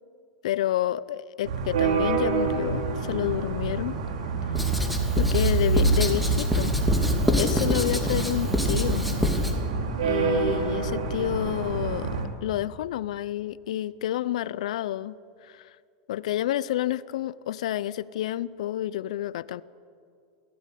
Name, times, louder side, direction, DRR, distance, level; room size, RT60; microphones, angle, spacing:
voice 1, 0.4-4.0 5.2-6.7 7.4-9.0 10.0-15.2 15.4-15.7 16.1-19.6, left 13 dB, 80° left, 18 dB, 0.6 m, -29 dB
sound 1, 1.4-12.3, right 4 dB, 80° right, 3.6 m, -27 dB
Writing, 4.5-9.6, left 1 dB, ahead, 2.9 m, -26 dB
22.5 x 16.5 x 8.5 m, 2.3 s
hypercardioid pair, 115°, 4 cm